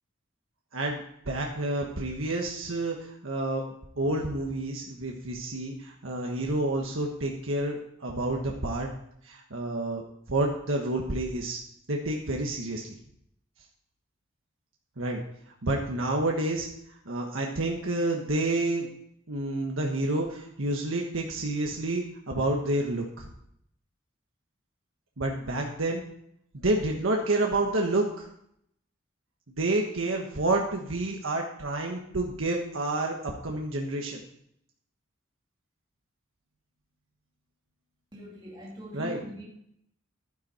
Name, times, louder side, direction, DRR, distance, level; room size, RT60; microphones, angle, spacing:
voice 1, 1.3-3.6 4.0-8.9 9.2-10.0 10.3-11.6 11.9-12.9 15.0-15.2 15.6-16.7 17.1-18.9 19.3-23.3 25.2-26.0 26.6-28.3 29.6-34.2 38.9-39.2, right 2 dB, 85° right, 0 dB, 1.4 m, -29 dB
voice 2, 38.1-39.4, equal, 25° right, -4 dB, 2.5 m, -41 dB
12.0 x 10.5 x 4.4 m, 0.72 s
head